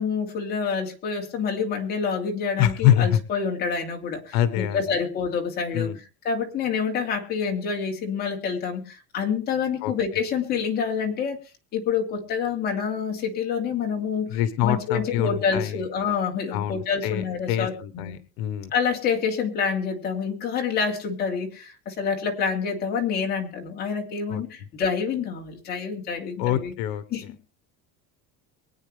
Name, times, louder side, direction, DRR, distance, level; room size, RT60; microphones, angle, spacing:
voice 1, 0.0-5.9 6.2-11.4 11.7-14.3 14.6-18.2 18.7-26.7 27.1-27.2, left 6 dB, 30° left, 1 dB, 3.0 m, -27 dB
voice 2, 2.6-3.2 4.3-4.9 5.7-6.0 9.8-10.2 14.3-15.9 16.5-18.7 24.3-24.4 26.4-27.0, left 11 dB, 85° left, 13 dB, 1.3 m, -25 dB
23.5 x 9.4 x 3.3 m, 0.33 s
cardioid pair, 180°, 30 cm